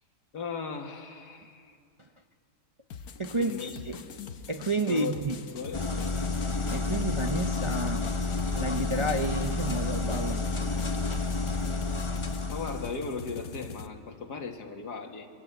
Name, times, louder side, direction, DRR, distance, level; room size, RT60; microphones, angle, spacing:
voice 1, 0.3-1.8 3.3-4.1 4.9-5.2 5.5-6.2 12.5-15.3, left 5 dB, 90° left, 4 dB, 2.4 m, -37 dB
sound 1, 2.9-13.9, left 7 dB, 65° left, 1.4 m, -44 dB
voice 2, 3.2-4.0 4.5-5.4 6.7-8.1 8.5-10.5, right 2 dB, 35° right, 5 dB, 0.5 m, -31 dB
sound 2, 5.7-12.9, left 3 dB, 25° left, 0.9 m, -30 dB
27.0 x 23.5 x 8.0 m, 2.3 s
omnidirectional pair, 1.7 m